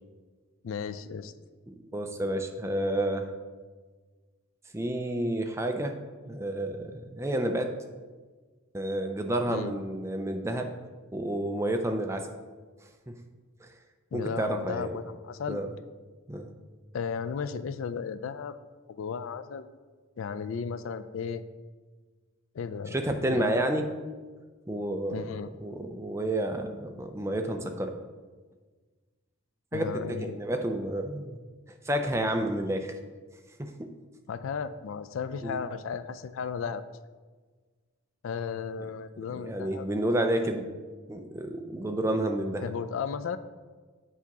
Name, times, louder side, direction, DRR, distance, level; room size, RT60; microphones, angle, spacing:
voice 1, 0.6-1.3 9.5-9.7 14.1-15.6 16.9-18.6 19.0-19.7 20.2-21.4 22.5-23.0 23.3-23.6 25.1-25.5 29.7-30.4 34.3-36.8 38.2-39.9 42.6-43.4, left 6 dB, 65° left, 12 dB, 0.3 m, -34 dB
voice 2, 1.7-3.3 4.7-6.0 6.3-7.8 8.7-10.7 11.1-12.3 13.1-13.2 13.6-13.7 14.1-15.0 15.5-15.7 16.3-16.5 22.9-23.9 24.7-25.3 25.6-27.9 29.7-31.4 31.7-32.9 33.6-33.9 35.4-35.6 39.4-40.7 41.1-42.7, right 1 dB, 15° right, 5 dB, 0.4 m, -30 dB
8.2 x 2.8 x 5.9 m, 1.4 s
head